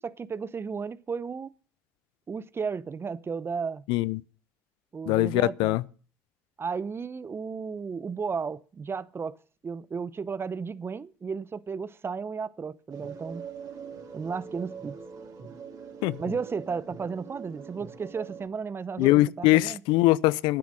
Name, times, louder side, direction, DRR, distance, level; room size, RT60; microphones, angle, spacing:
voice 1, 0.0-1.5 2.3-3.8 4.9-5.8 6.6-9.4 9.6-13.5 14.1-14.9 16.2-19.1 19.4-19.8, right 5 dB, 30° right, 0.8 m, -34 dB
voice 2, 3.9-4.2 5.1-5.8 16.0-16.2 19.0-20.6, left 18 dB, 70° left, 0.6 m, -22 dB
sound 1, 12.9-18.5, right 6 dB, 50° right, 4.2 m, -43 dB
11.5 x 9.5 x 6.2 m
hypercardioid pair, 75°, 8 cm